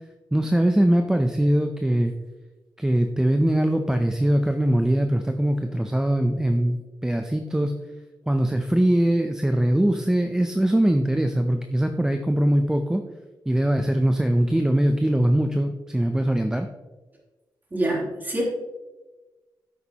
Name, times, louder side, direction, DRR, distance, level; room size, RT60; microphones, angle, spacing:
voice 1, 0.3-2.1 2.8-7.7 8.3-13.0 13.5-16.7, right 1 dB, 10° right, 6 dB, 0.5 m, -22 dB
voice 2, 17.7-18.4, right 1 dB, 25° right, -4 dB, 3.3 m, -25 dB
10.0 x 8.2 x 2.9 m, 1.2 s
cardioid pair, 95°, 8 cm